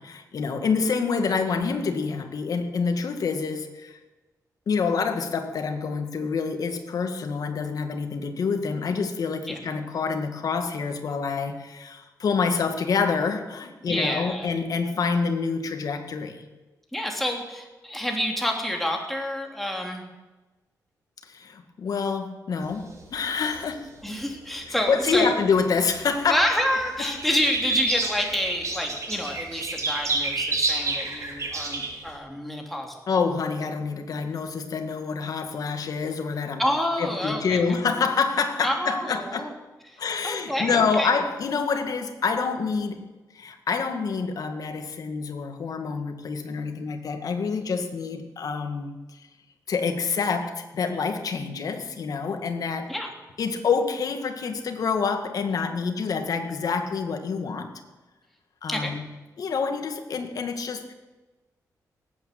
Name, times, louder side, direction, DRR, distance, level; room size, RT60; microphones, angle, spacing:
voice 1, 0.0-4.0 4.7-16.5 21.2-23.9 24.7-26.5 27.0-27.1 33.1-36.6 37.0-39.5 40.0-43.0 43.3-49.2 49.7-52.9 53.4-57.7 58.6-59.0 59.4-60.9, left 5 dB, 60° left, 6 dB, 2.0 m, -27 dB
voice 2, 13.8-14.5 16.9-20.0 24.0-25.3 26.3-32.9 36.6-37.6 38.6-39.5 39.9-41.1 52.9-53.1 58.7-58.9, equal, ahead, 1 dB, 3.2 m, -28 dB
sound 1, 22.7-25.2 25.6-32.0, right 3 dB, 50° right, 4.2 m, -29 dB
18.5 x 9.1 x 7.7 m, 1.1 s
cardioid pair, 95°, 7 cm